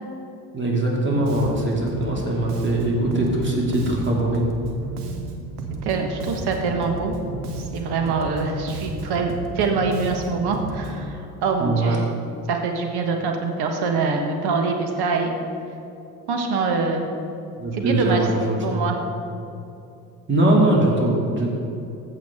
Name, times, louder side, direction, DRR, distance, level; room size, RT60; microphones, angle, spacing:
voice 1, 0.5-4.4 11.6-12.0 17.6-18.6 20.3-21.5, right 1 dB, 25° right, -2 dB, 2.6 m, -21 dB
Bass guitar, 1.3-11.1, right 3 dB, 90° right, 1.0 m, -33 dB
voice 2, 5.8-7.1 7.6-12.0 12.5-15.3 16.3-17.0 17.7-18.2 18.6-19.0, right 4 dB, 60° right, 4 dB, 1.6 m, -24 dB
15.0 x 6.7 x 3.8 m, 2.8 s
hypercardioid pair, 55°, 45 cm